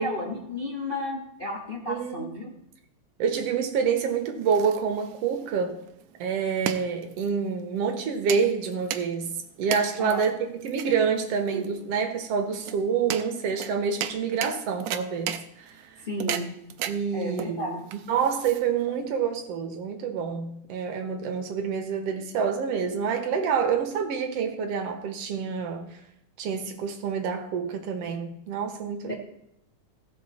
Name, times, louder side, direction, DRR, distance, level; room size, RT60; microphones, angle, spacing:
voice 1, 0.0-2.4 10.0-10.2 16.0-16.4 17.1-17.8 29.1-29.2, left 2 dB, 90° left, -3 dB, 0.4 m, -32 dB
voice 2, 1.9-2.3 3.2-5.8 6.2-15.9 16.9-17.8 18.1-25.8 26.4-29.1, right 6 dB, 65° right, 5 dB, 2.0 m, -27 dB
sound 1, 4.1-19.0, right 11 dB, 80° right, 1.8 m, -36 dB
16.0 x 6.3 x 4.2 m, 0.78 s
omnidirectional pair, 3.3 m